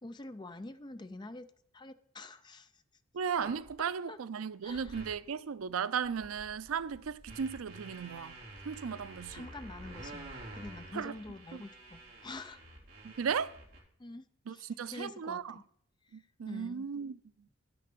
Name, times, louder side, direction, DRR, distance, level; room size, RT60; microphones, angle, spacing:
voice 1, 0.0-1.5 1.7-2.8 4.1-4.2 4.6-5.0 9.3-12.6 14.0-15.6 16.0-16.2 16.5-16.9, left 2 dB, 20° left, 0.5 m, -46 dB
voice 2, 3.1-8.4 8.6-9.5 10.9-11.2 11.5-11.6 13.0-13.6 14.5-15.6 16.1-17.2, right 6 dB, 85° right, 0.4 m, -36 dB
sound 1, 3.4-3.7 4.7-5.2 5.7-5.8 6.0-13.8, right 2 dB, 45° right, 3.5 m, -49 dB
9.6 x 6.8 x 6.7 m
head